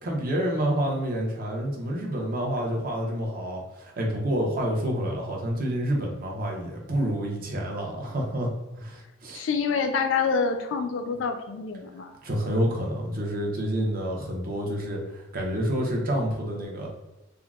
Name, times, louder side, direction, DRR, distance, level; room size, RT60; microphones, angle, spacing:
voice 1, 0.0-8.5 8.8-9.4 12.2-16.9, equal, 45° right, -1 dB, 0.6 m, -28 dB
voice 2, 9.3-12.1, left 5 dB, 75° left, 7 dB, 0.4 m, -27 dB
3.6 x 2.0 x 2.3 m, 1.0 s
head